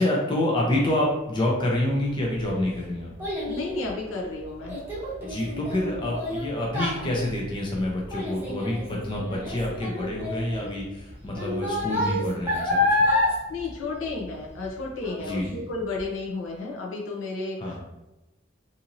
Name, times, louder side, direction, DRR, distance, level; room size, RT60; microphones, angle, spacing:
voice 1, 0.0-3.1 5.2-13.1 15.2-15.6 17.6-17.8, left 1 dB, 25° left, -2 dB, 0.4 m, -27 dB
Child speech kid speaking, 2.0-14.7 15.0-15.5 16.0-16.1, left 1 dB, 10° right, 0.7 m, -29 dB
voice 2, 3.5-4.8 13.5-17.8, left 3 dB, 80° left, -1 dB, 0.7 m, -32 dB
2.8 x 2.6 x 2.6 m, 1.0 s
head